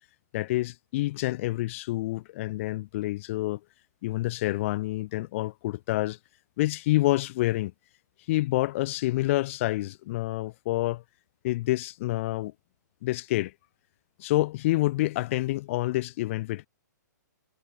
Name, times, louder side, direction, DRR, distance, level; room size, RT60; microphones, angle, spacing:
voice 1, 0.3-3.6 4.0-6.2 6.6-7.7 8.3-11.0 11.4-12.5 13.0-13.5 14.2-16.7, left 17 dB, 45° left, 0.6 m, -28 dB
hypercardioid pair, 135°, 10 cm